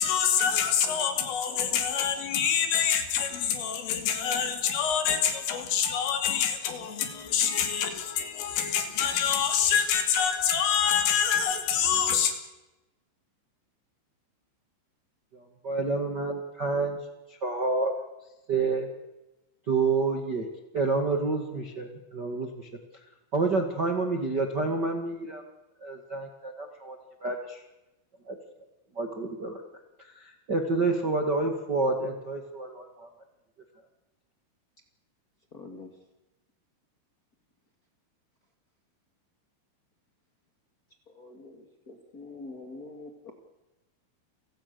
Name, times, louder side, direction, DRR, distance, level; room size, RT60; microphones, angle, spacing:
voice 1, 0.0-12.3, left 8 dB, 85° left, 5.1 m, -26 dB
voice 2, 15.3-17.0 17.3-17.9 18.5-18.9 19.7-20.4 20.7-22.7 23.3-25.4 25.8-27.0 27.2-27.6 28.3-28.4 28.9-29.6 30.0-33.1, right 3 dB, 65° right, 1.0 m, -29 dB
voice 3, 35.5-35.9 41.1-43.3, left 3 dB, 40° left, 1.3 m, -45 dB
30.0 x 17.0 x 6.9 m
omnidirectional pair, 5.6 m